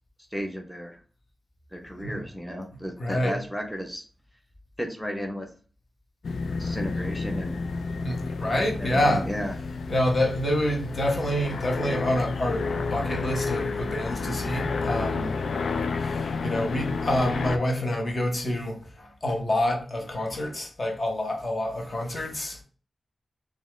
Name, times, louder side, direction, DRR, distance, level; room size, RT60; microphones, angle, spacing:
voice 1, 0.3-1.0 1.7-4.0 4.8-5.5 6.6-7.6 8.7-9.5, equal, ahead, 0.6 m, -33 dB
voice 2, 3.0-3.4 8.0-9.2 9.9-15.4 16.0-22.6, left 1 dB, 40° left, 1.1 m, -27 dB
sound 1, 6.2-17.6, left 4 dB, 85° left, 0.4 m, -30 dB
5.2 x 2.4 x 3.1 m
wide cardioid pair, 155°, 0 cm